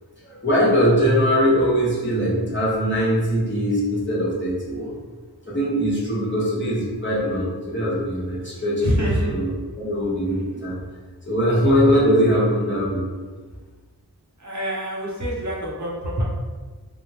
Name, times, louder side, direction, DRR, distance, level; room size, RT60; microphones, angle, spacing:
voice 1, 0.2-4.9 5.5-8.9 9.2-9.5 9.8-10.8 11.3-13.1, equal, 30° left, -7 dB, 1.1 m, -21 dB
voice 2, 8.8-9.3 10.3-10.7 14.4-16.2, equal, 45° right, -5 dB, 0.8 m, -26 dB
3.4 x 2.0 x 2.9 m, 1.4 s
wide cardioid pair, 55°, 38 cm